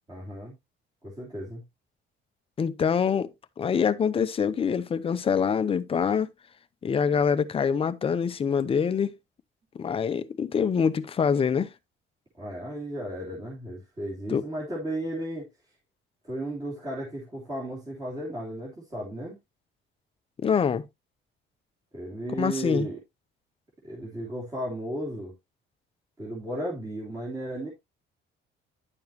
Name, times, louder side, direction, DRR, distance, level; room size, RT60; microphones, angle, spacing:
voice 1, 0.1-0.5 1.0-1.6 12.4-15.5 16.2-19.4 21.9-23.0 23.8-25.3 26.2-27.7, right 1 dB, 20° right, 3.4 m, -34 dB
voice 2, 2.6-3.3 3.6-6.3 6.8-9.1 9.7-11.7 14.3-14.4 20.4-20.8 22.4-22.9, left 6 dB, 25° left, 0.7 m, -25 dB
10.5 x 7.0 x 2.8 m
cardioid pair, 170°, 21 cm